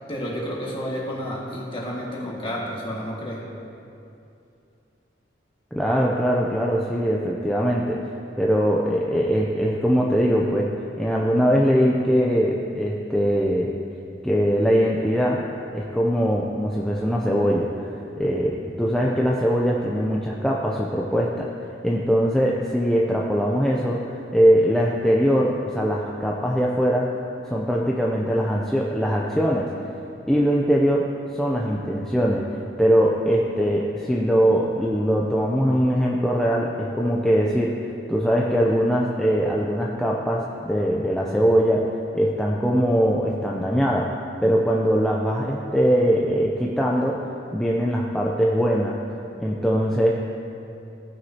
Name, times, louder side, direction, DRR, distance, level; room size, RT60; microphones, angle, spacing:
voice 1, 0.1-3.5, equal, 30° left, -4 dB, 1.8 m, -30 dB
voice 2, 5.7-8.0 8.4-10.7 11.0-13.7 14.2-15.4 15.7-21.5 21.8-27.1 27.5-29.7 30.3-31.1 31.3-32.5 32.8-37.8 38.1-44.1 44.4-47.2 47.5-49.0 49.4-50.1, equal, 5° left, -3 dB, 0.5 m, -21 dB
16.0 x 6.3 x 2.8 m, 2.7 s
head